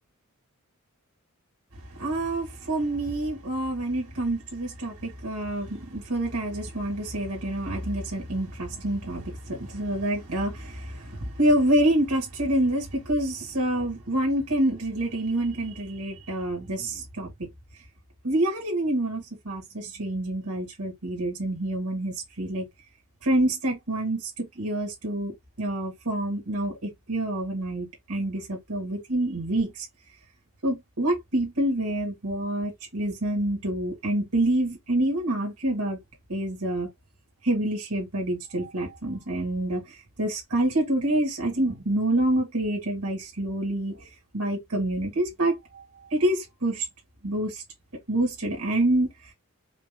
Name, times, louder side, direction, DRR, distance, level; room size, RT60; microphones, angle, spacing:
voice 1, 2.0-17.3 18.2-22.6 23.2-29.7 30.6-36.0 36.3-36.9 37.4-39.8 40.2-44.0 44.3-45.8 46.1-46.8 47.2-47.6 48.1-49.1, right 1 dB, 85° right, 2.0 m, -27 dB
4.9 x 2.2 x 3.6 m
head